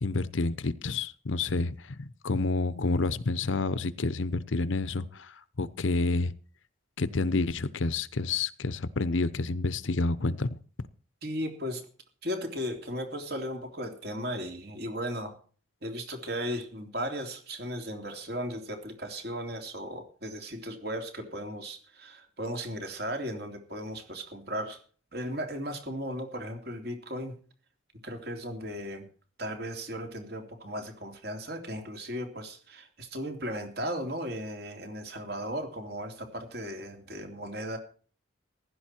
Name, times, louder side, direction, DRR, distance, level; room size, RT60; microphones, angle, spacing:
voice 1, 0.0-6.3 7.0-10.6, left 3 dB, 75° left, 0.8 m, -29 dB
voice 2, 11.2-11.8 12.2-15.4 15.8-24.8 25.1-27.4 28.0-29.0 29.4-37.8, equal, 50° right, 3.1 m, -36 dB
15.5 x 11.5 x 4.5 m
head